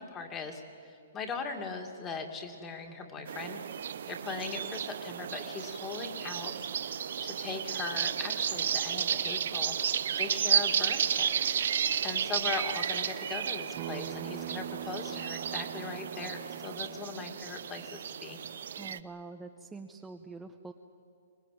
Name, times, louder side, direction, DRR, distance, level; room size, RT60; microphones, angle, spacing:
voice 1, 0.0-3.6 4.1-9.7 10.2-11.4 12.0-18.4, left 4 dB, 15° left, 5 dB, 2.2 m, -40 dB
sound 1, 3.3-19.0, right 8 dB, 65° right, 0.8 m, -33 dB
Acoustic guitar, 13.8-19.0, right 11 dB, 35° right, 1.0 m, -45 dB
voice 2, 18.8-20.7, right 3 dB, 5° right, 4 dB, 0.7 m, -45 dB
24.5 x 19.5 x 9.3 m, 2.4 s
hypercardioid pair, 155°, 0 cm